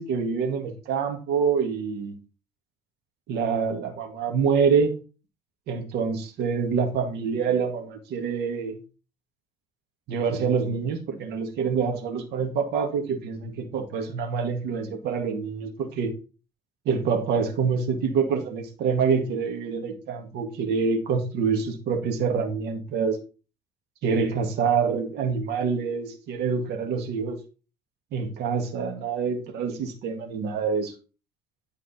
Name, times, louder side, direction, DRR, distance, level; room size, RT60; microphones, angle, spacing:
voice 1, 0.0-2.2 3.3-5.0 5.7-8.7 10.1-16.2 16.9-23.2 24.0-27.4 28.1-30.9, right 5 dB, 80° right, 2.0 m, -26 dB
10.5 x 4.9 x 4.3 m
cardioid pair, 110°, 17 cm